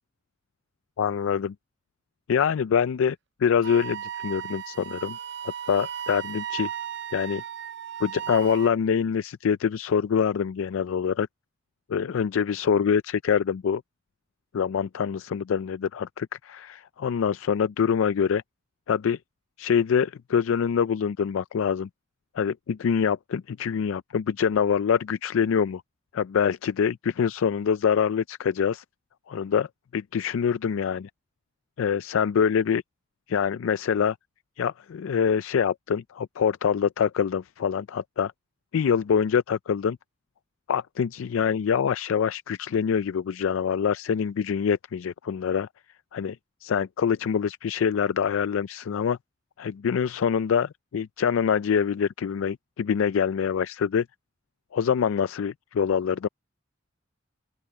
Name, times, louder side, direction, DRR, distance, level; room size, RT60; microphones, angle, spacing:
voice 1, 1.0-1.5 2.3-3.2 3.4-5.2 5.7-6.7 7.1-7.4 8.0-11.3 11.9-13.8 14.5-18.4 18.9-19.2 19.6-21.9 22.4-25.8 26.1-28.8 29.3-29.7 29.9-31.1 31.8-32.8 33.3-34.2 34.6-38.3 38.7-40.0 40.7-45.7 46.1-49.2 49.6-54.1 54.7-56.3, left 7 dB, 85° left, 0.4 m, -25 dB
Wind instrument woodwind instrument, 3.6-8.8, right 10 dB, 60° right, 0.5 m, -35 dB
open air
head